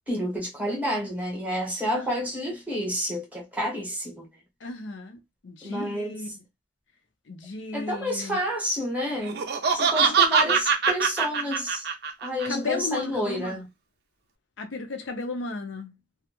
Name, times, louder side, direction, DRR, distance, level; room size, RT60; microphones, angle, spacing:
voice 1, 0.1-4.3 5.6-6.2 7.7-9.4 9.7-11.9 12.2-13.6, equal, 10° right, 0.8 m, -29 dB
voice 2, 4.6-6.3 7.3-8.4 10.0-10.1 12.4-13.7 14.6-16.0, left 3 dB, 75° left, 0.5 m, -35 dB
Laughter, 9.2-12.5, right 5 dB, 55° right, 0.4 m, -23 dB
2.3 x 2.0 x 2.8 m
head